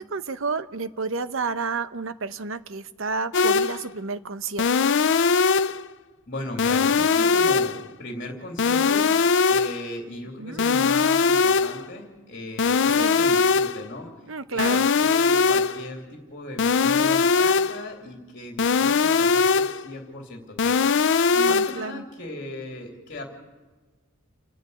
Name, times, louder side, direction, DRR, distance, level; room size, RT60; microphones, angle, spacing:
voice 1, 0.0-4.9 10.4-10.7 13.0-13.2 14.3-14.9 21.3-22.0, right 4 dB, 65° right, 12 dB, 0.9 m, -31 dB
sound 1, 3.3-3.9 4.6-5.9 6.6-7.9 8.6-9.9 10.6-11.9 12.6-13.9 14.6-15.9 16.6-17.9 18.6-19.9 20.6-21.9, left 5 dB, 60° left, 0.6 m, -21 dB
voice 2, 6.3-9.1 9.4-14.1 14.5-20.8 21.4-23.3, left 1 dB, 45° left, 2 dB, 2.9 m, -37 dB
29.5 x 10.5 x 8.3 m, 1.3 s
head